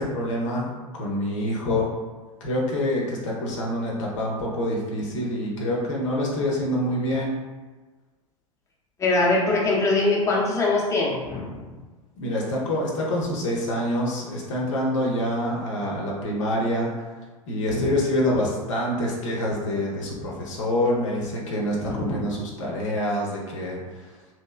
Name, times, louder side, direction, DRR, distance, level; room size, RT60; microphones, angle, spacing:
voice 1, 0.0-1.9 2.4-7.4 12.2-16.9 17.5-24.2, left 1 dB, 60° left, -3 dB, 0.7 m, -26 dB
voice 2, 9.0-11.8 17.7-17.9 21.8-22.0, left 2 dB, 15° left, -4 dB, 0.7 m, -23 dB
3.0 x 3.0 x 2.2 m, 1.3 s
figure-of-eight pair, 85°, 18 cm